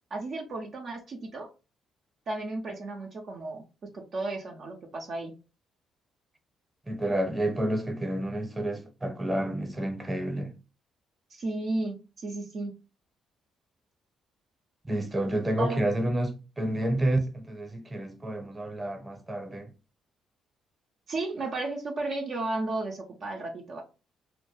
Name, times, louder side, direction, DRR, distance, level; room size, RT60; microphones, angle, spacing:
voice 1, 0.1-1.5 2.3-3.6 3.9-5.3 11.3-12.7 15.6-15.8 21.1-23.8, right 2 dB, 55° right, 0.5 m, -33 dB
voice 2, 6.9-10.5 14.8-19.7, right 1 dB, 20° right, 0.8 m, -29 dB
2.2 x 2.1 x 3.0 m
hypercardioid pair, 50°, 0 cm